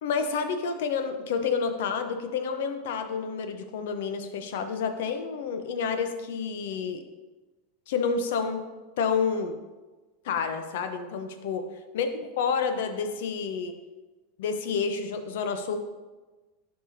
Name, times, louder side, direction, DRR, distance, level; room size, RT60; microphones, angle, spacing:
voice 1, 0.0-7.0 7.9-8.6 9.0-9.6 10.2-11.7 11.9-12.1 12.4-13.7 14.4-15.8, left 5 dB, 70° left, 8 dB, 0.7 m, -29 dB
11.0 x 4.8 x 2.7 m, 1.2 s
hypercardioid pair, 90°, 0 cm